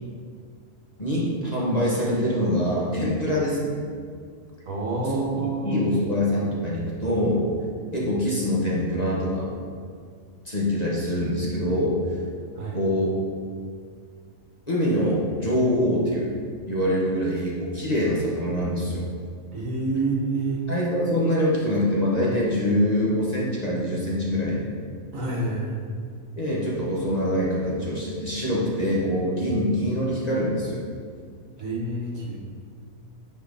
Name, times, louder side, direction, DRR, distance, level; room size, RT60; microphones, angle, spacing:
voice 1, 1.0-3.8 5.0-7.5 7.9-9.5 10.4-12.0 12.7-13.1 14.7-16.3 16.7-19.0 20.7-24.6 26.4-30.8, equal, 30° left, -6 dB, 1.4 m, -24 dB
voice 2, 4.7-5.9 12.5-12.8 19.5-20.6 25.1-25.9 31.6-32.4, right 3 dB, 60° right, -3 dB, 1.7 m, -28 dB
10.0 x 4.5 x 4.1 m, 2.1 s
omnidirectional pair, 1.6 m